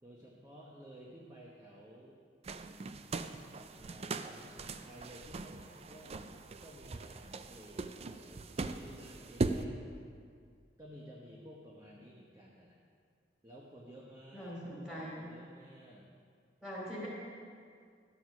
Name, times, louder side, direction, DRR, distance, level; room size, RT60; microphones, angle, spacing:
voice 1, 0.0-2.2 3.7-6.2 6.6-9.9 10.8-12.8 13.4-16.1, equal, 20° right, -4 dB, 1.0 m, -54 dB
sound 1, 2.4-9.6, right 3 dB, 35° right, 0.4 m, -40 dB
voice 2, 14.3-15.3 16.6-17.1, equal, 5° right, -6 dB, 2.9 m, -42 dB
11.0 x 7.1 x 6.0 m, 2.2 s
head